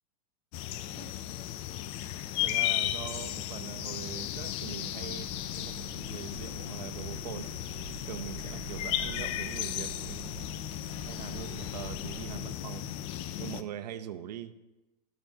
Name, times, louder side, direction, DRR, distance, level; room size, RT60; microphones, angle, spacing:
sound 1, 0.5-13.6, left 13 dB, 30° left, 0.3 m, -35 dB
voice 1, 2.2-5.3 5.5-7.5 8.1-10.3 11.1-12.9 13.4-14.5, right 11 dB, 85° right, 11 dB, 0.6 m, -42 dB
sound 2, 5.0-12.4, right 4 dB, 65° right, 1.4 m, -46 dB
13.5 x 6.9 x 2.8 m, 1.0 s
supercardioid pair, 150°, 20 cm